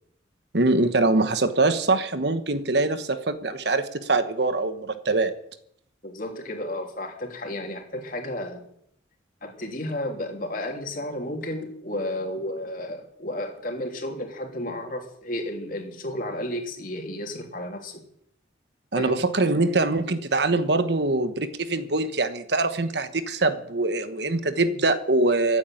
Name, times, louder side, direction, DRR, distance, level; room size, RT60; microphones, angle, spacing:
voice 1, 0.5-5.3 18.9-25.6, right 2 dB, 60° right, 11 dB, 1.2 m, -23 dB
voice 2, 6.0-8.6 9.4-18.0 18.9-19.2, left 1 dB, 45° left, 3 dB, 3.1 m, -32 dB
15.0 x 9.5 x 9.1 m, 0.71 s
head